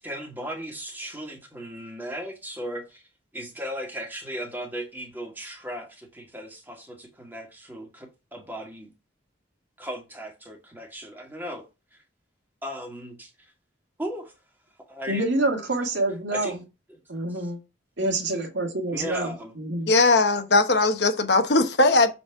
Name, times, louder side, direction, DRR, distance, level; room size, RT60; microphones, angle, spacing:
voice 1, 0.0-3.0 3.3-8.9 9.8-11.6 11.9-12.0 12.6-13.5 14.0-14.3 14.9-15.3 16.3-16.6 16.9-17.0 17.3-17.5 18.9-19.5, equal, 10° right, 1.9 m, -37 dB
voice 2, 15.1-16.6 17.1-17.6 18.0-19.9, right 2 dB, 75° right, 2.0 m, -27 dB
voice 3, 19.9-22.1, left 2 dB, 60° left, 1.0 m, -19 dB
7.1 x 4.2 x 4.7 m
head